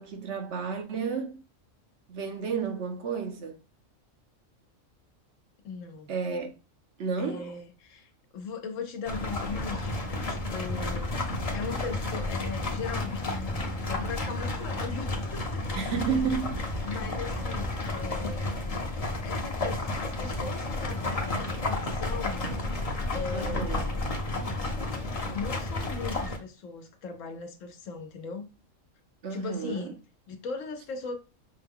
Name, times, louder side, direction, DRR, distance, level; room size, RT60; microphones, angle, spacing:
voice 1, 0.0-1.4 2.1-3.6 6.1-6.5 7.0-7.5 15.7-16.6 23.3-23.8 29.2-29.9, right 6 dB, 65° right, 1.0 m, -31 dB
voice 2, 5.6-6.2 7.2-11.2 11.5-16.0 16.8-18.5 19.2-22.5 23.1-24.1 25.3-28.5 29.3-29.9 30.3-31.1, left 5 dB, 75° left, 1.1 m, -39 dB
sound 1, 9.1-26.4, left 2 dB, 35° left, 0.7 m, -31 dB
5.7 x 2.2 x 3.5 m
omnidirectional pair, 1.3 m